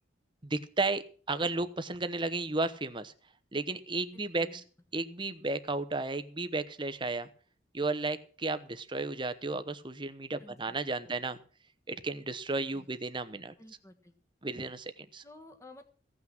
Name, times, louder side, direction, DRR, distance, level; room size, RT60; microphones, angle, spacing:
voice 1, 0.4-3.1 3.5-4.6 4.9-7.3 7.7-11.4 11.9-13.5 14.4-15.2, right 3 dB, 25° right, 11 dB, 0.9 m, -33 dB
voice 2, 4.1-4.6 10.4-10.8 12.7-12.9 13.6-14.1 15.2-15.8, left 2 dB, 15° left, 5 dB, 1.5 m, -53 dB
16.0 x 6.0 x 7.7 m, 0.42 s
head